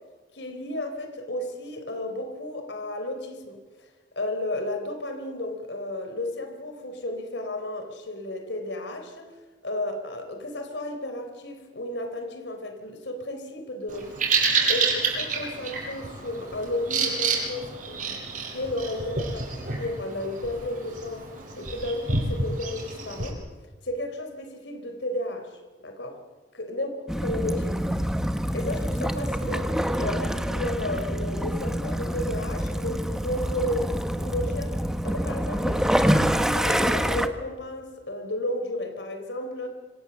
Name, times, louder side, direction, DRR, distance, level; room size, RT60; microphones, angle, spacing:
voice 1, 0.3-3.6 4.2-9.3 9.6-14.1 14.7-18.2 18.5-21.2 21.6-23.4 23.8-26.2 26.5-26.9 27.2-27.8 28.5-34.7 35.0-39.7, left 1 dB, 90° left, 6 dB, 3.9 m, -33 dB
Bird vocalization bird call bird song, 13.9-23.3, right 4 dB, 45° right, 6.7 m, -29 dB
Waves surf / Splash splatter / Trickle dribble, 27.1-37.3, equal, 5° right, 1.3 m, -26 dB
27.0 x 25.5 x 7.1 m, 1.3 s
head